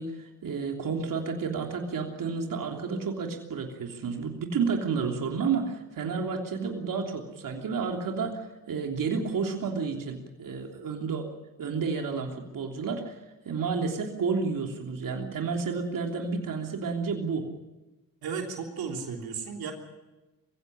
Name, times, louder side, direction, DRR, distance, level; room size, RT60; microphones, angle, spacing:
voice 1, 0.0-11.3 11.6-13.2 13.4-17.5, right 5 dB, 65° right, 2 dB, 3.3 m, -31 dB
voice 2, 18.2-19.7, right 6 dB, 80° right, 2 dB, 3.5 m, -34 dB
22.5 x 16.5 x 10.0 m, 1.1 s
cardioid pair, 65°, 36 cm